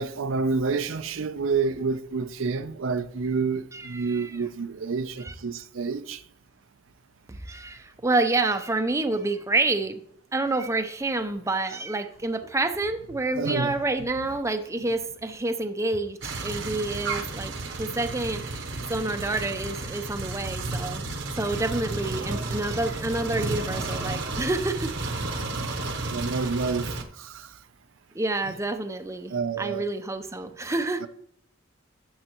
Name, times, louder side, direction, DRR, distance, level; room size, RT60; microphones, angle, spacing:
voice 1, 0.0-6.2 13.4-13.8 26.1-26.9 27.2-27.5 29.3-29.9 31.0-31.1, right 4 dB, 80° right, 0.6 m, -28 dB
voice 2, 3.7-4.4 5.2-5.3 7.3-10.0 10.3-21.0 21.4-24.9 28.1-31.0, right 2 dB, 15° right, 0.6 m, -28 dB
sound 1, 16.2-27.0, right 2 dB, 65° right, 1.0 m, -32 dB
13.0 x 7.2 x 3.0 m
head